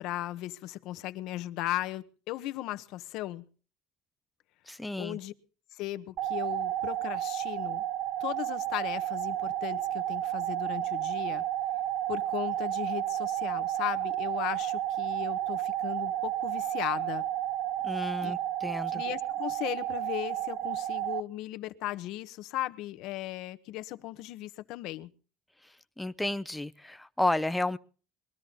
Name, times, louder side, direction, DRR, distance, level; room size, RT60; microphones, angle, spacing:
voice 1, 0.0-3.4 5.0-5.3 5.7-7.8 8.2-11.4 12.1-17.2 18.2-18.3 18.9-25.1, left 15 dB, 65° left, 1.2 m, -37 dB
voice 2, 4.7-5.2 17.8-19.0 26.0-27.8, left 2 dB, 5° left, 0.8 m, -32 dB
sound 1, 6.2-21.2, right 12 dB, 60° right, 0.7 m, -32 dB
22.0 x 13.0 x 4.0 m
supercardioid pair, 115°, 0 cm